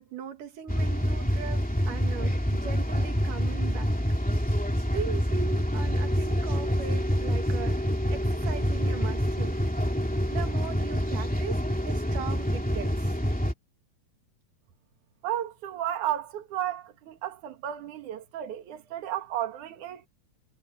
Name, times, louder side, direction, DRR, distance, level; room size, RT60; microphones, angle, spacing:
voice 1, 0.0-3.9 4.9-9.6 10.3-13.2, right 8 dB, 90° right, 3.7 m, -39 dB
sound 1, 0.7-13.5, equal, 5° left, 2.2 m, -27 dB
voice 2, 15.2-20.1, right 11 dB, 70° right, 3.1 m, -33 dB
omnidirectional pair, 3.7 m